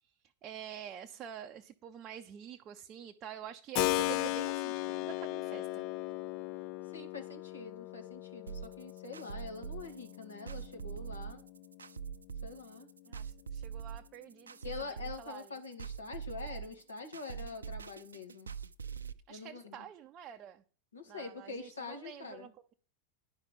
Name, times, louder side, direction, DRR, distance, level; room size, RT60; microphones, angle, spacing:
voice 1, 0.4-5.9 13.1-15.5 19.3-20.6 21.1-22.7, right 10 dB, 30° right, 0.6 m, -47 dB
Keyboard (musical), 3.7-12.4, left 17 dB, 40° left, 0.4 m, -37 dB
voice 2, 6.9-11.4 12.4-12.9 14.6-18.5 19.3-19.9 20.9-22.5, left 4 dB, 75° left, 2.1 m, -45 dB
sound 1, 8.5-19.1, right 7 dB, 75° right, 0.5 m, -43 dB
10.5 x 5.8 x 6.6 m
figure-of-eight pair, 90°, 0 cm